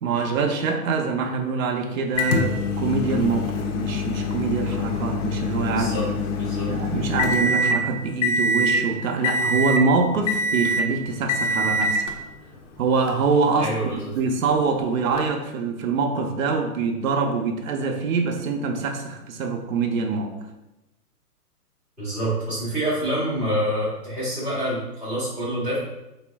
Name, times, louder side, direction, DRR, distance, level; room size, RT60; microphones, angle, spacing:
voice 1, 0.0-6.1 6.7-12.1 12.8-13.7 14.1-20.4, right 4 dB, 60° right, 3 dB, 0.6 m, -24 dB
Microwave oven, 2.2-7.8 8.2-8.8 9.2-9.9 10.3-10.9 11.3-12.1 13.1-13.2 15.2-15.3, left 1 dB, 50° left, 0.5 m, -24 dB
voice 2, 5.7-6.0 6.4-6.7 13.6-14.1 22.0-25.8, right 1 dB, 5° right, -12 dB, 0.5 m, -27 dB
3.8 x 2.1 x 3.4 m, 0.95 s
hypercardioid pair, 135°, 47 cm